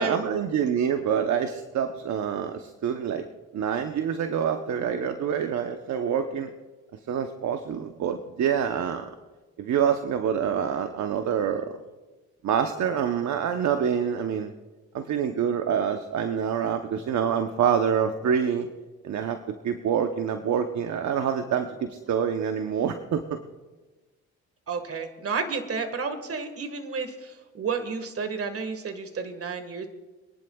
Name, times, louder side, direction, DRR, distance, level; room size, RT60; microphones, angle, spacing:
voice 1, 0.0-3.3 3.5-6.5 7.1-9.1 9.6-11.8 12.4-14.5 14.9-18.7 19.0-23.4, right 8 dB, 65° right, 7 dB, 0.9 m, -26 dB
voice 2, 24.7-29.9, right 5 dB, 50° right, 8 dB, 1.7 m, -31 dB
25.5 x 10.5 x 2.3 m, 1.2 s
cardioid pair, 80°, 31 cm